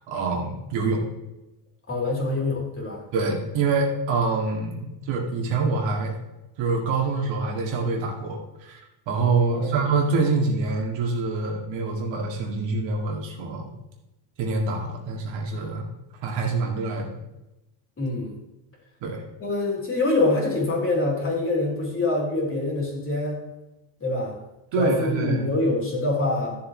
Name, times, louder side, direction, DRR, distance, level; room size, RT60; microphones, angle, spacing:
voice 1, 0.1-1.1 3.1-6.2 6.6-8.8 9.1-13.7 14.4-15.8 16.2-17.2 19.0-19.2 24.7-25.5, right 3 dB, 60° right, 0 dB, 2.4 m, -25 dB
voice 2, 1.9-3.0 9.5-9.8 18.0-18.3 19.4-23.4 24.0-24.3 24.8-26.6, left 2 dB, 25° left, -3 dB, 3.5 m, -25 dB
12.5 x 7.5 x 3.3 m, 0.96 s
cardioid pair, 135°, 50 cm